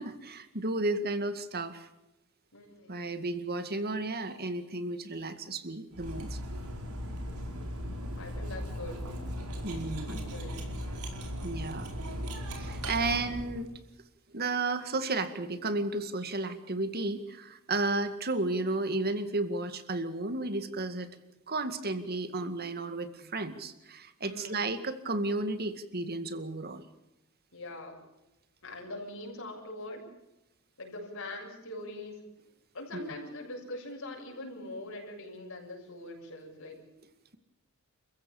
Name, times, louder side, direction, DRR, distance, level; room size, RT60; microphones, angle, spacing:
voice 1, 0.0-1.9 2.9-6.4 9.6-10.3 11.4-11.9 12.5-13.7 14.3-21.1 21.5-26.8 32.9-33.1, right 2 dB, 45° right, 10 dB, 2.1 m, -33 dB
voice 2, 2.5-3.1 8.2-9.0 10.1-10.5 24.2-24.6 27.5-28.0 28.6-30.1 30.8-32.2 32.7-36.8, left 2 dB, 65° left, 0 dB, 7.3 m, -42 dB
Cutlery silverware, 5.9-13.7, equal, 85° right, 4.8 m, -38 dB
29.0 x 15.5 x 7.2 m, 0.93 s
head